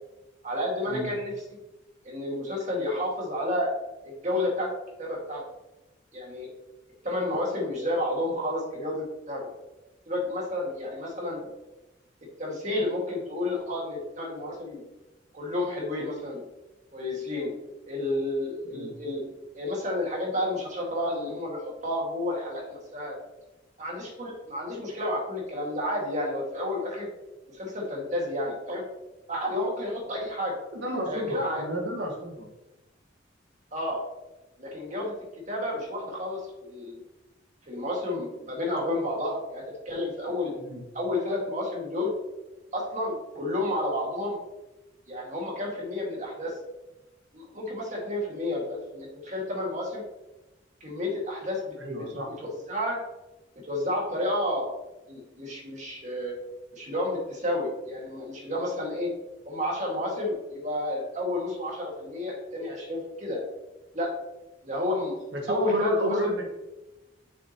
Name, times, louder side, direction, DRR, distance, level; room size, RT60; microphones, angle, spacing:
voice 1, 0.4-1.3 2.0-3.7 4.0-4.7 5.0-5.4 6.1-6.5 7.0-9.5 10.1-11.4 12.4-14.8 15.3-16.4 16.9-17.5 17.9-19.3 19.5-23.2 23.8-27.1 27.5-28.8 29.3-30.5 31.1-31.6 33.7-34.0 34.6-35.1 35.5-37.0 37.7-40.5 40.9-42.1 42.7-44.4 45.1-46.6 47.3-50.0 50.8-51.8 52.2-53.0 53.7-54.7 55.1-56.3 56.7-59.1 59.5-63.4 63.9-64.1 64.6-65.2 65.5-66.2, left 1 dB, 40° right, -2 dB, 2.0 m, -31 dB
voice 2, 30.7-32.5 40.6-40.8 51.8-52.3 65.3-66.4, equal, 65° right, 1 dB, 1.6 m, -31 dB
7.4 x 6.2 x 3.0 m, 1.0 s
head